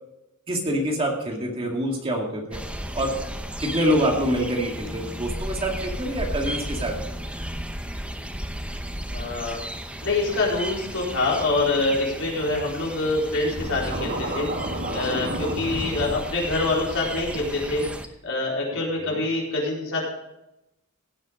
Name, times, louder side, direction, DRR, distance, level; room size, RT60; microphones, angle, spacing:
voice 1, 0.5-2.6 2.9-3.2 3.6-7.1 15.2-15.4 19.0-19.2, equal, 25° right, 0 dB, 2.3 m, -26 dB
sound 1, 2.5-18.1, right 1 dB, 5° right, 0.8 m, -34 dB
voice 2, 9.1-9.6 10.0-17.8 18.2-20.1, left 2 dB, 60° left, -3 dB, 4.3 m, -25 dB
Scratching (performance technique), 13.6-16.1, right 1 dB, 50° right, 2.1 m, -30 dB
16.5 x 7.3 x 5.1 m, 0.89 s
head